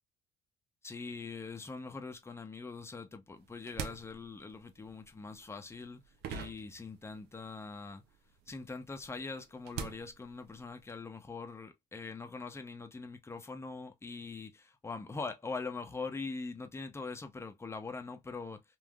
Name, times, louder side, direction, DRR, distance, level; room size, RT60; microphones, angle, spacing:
voice 1, 0.8-6.0 6.3-8.0 8.5-18.6, left 4 dB, 15° left, 0.7 m, -42 dB
sound 1, 3.4-7.5 7.7-11.0, right 7 dB, 75° right, 0.6 m, -45 dB
3.4 x 2.5 x 2.3 m
cardioid pair, 110°, 17 cm